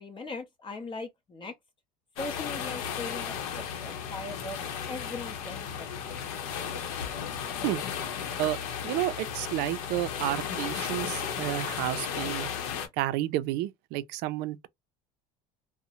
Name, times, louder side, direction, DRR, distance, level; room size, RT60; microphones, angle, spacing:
voice 1, 0.0-1.5 2.2-4.6 4.9-6.1, left 3 dB, 25° left, 0.6 m, -40 dB
sound 1, 2.2-12.9, left 8 dB, 85° left, 0.8 m, -35 dB
voice 2, 8.8-12.5 13.0-14.7, right 15 dB, 65° right, 0.4 m, -31 dB
2.6 x 2.0 x 2.8 m
supercardioid pair, 100°, 18 cm